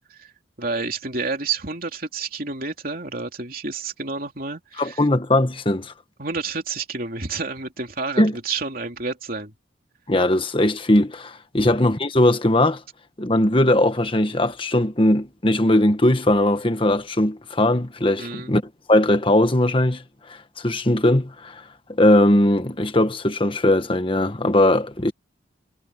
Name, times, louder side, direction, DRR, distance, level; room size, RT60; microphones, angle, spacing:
voice 1, 0.6-5.1 6.2-9.5 11.6-11.8 18.2-18.5, right 4 dB, 50° right, 3.2 m, -30 dB
voice 2, 4.8-5.9 8.2-8.3 10.1-12.8 13.2-18.6 18.9-20.0 20.6-21.6 21.9-25.1, left 1 dB, 30° left, 1.4 m, -19 dB
head